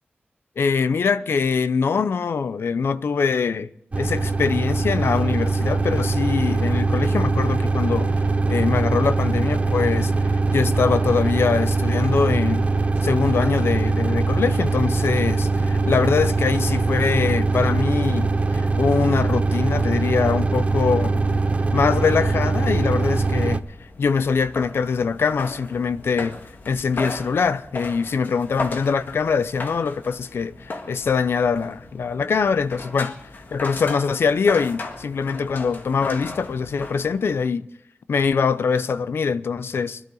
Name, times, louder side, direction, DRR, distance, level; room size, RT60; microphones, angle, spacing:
voice 1, 0.6-3.7 4.0-8.1 8.5-12.7 13.0-21.4 21.7-23.6 24.0-26.4 26.7-33.1 33.5-37.7 38.1-40.0, left 5 dB, 75° left, 0.6 m, -23 dB
sound 1, 3.9-23.6, right 3 dB, 35° right, 0.5 m, -22 dB
sound 2, 22.6-37.5, left 2 dB, 55° left, 1.7 m, -37 dB
24.5 x 12.0 x 3.9 m
wide cardioid pair, 125°, 4 cm